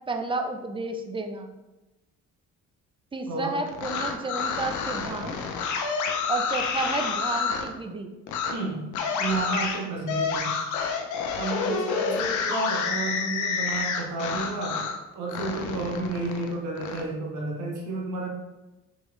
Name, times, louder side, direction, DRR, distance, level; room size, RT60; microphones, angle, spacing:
voice 1, 0.1-1.5 3.1-5.4 6.3-8.1, right 3 dB, 15° right, 6 dB, 0.5 m, -31 dB
voice 2, 3.3-3.6 8.5-8.9 9.2-10.6 11.3-14.9 15.1-18.3, right 3 dB, 75° right, -1 dB, 1.1 m, -31 dB
sound 1, 3.7-7.7 8.3-8.5 8.9-15.0 15.3-17.0, left 5 dB, 75° left, 0.7 m, -29 dB
5.4 x 3.0 x 3.2 m, 1.0 s
cardioid pair, 90°, 30 cm